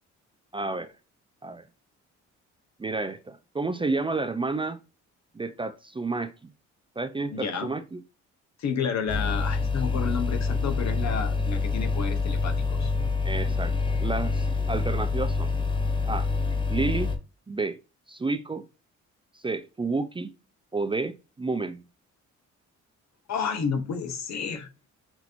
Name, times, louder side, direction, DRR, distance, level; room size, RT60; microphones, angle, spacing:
voice 1, 0.5-0.9 1.4-1.6 2.8-4.8 5.3-6.5 7.0-8.0 13.2-13.7 14.0-15.5 16.1-16.3 16.7-17.1 17.5-17.8 18.1-18.7 19.3-20.3 20.7-21.8, right 3 dB, 15° right, 0.4 m, -30 dB
voice 2, 7.3-7.7 8.6-12.9 23.3-24.7, left 6 dB, 60° left, 1.2 m, -30 dB
sound 1, 9.1-17.2, left 4 dB, 15° left, 1.0 m, -26 dB
6.1 x 2.8 x 2.5 m
cardioid pair, 90°, 30 cm